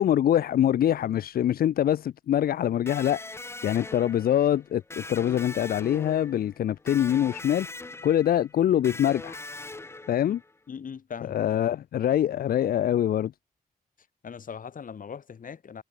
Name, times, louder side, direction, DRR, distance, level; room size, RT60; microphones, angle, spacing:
voice 1, 0.0-7.7 8.0-9.4 10.1-10.4 11.3-13.3, left 11 dB, 85° left, 0.5 m, -24 dB
Electric guitar, 2.9-10.6, left 2 dB, 15° left, 0.7 m, -41 dB
voice 2, 10.7-11.4 14.2-15.8, left 7 dB, 65° left, 3.1 m, -40 dB
cardioid pair, 90°, 15 cm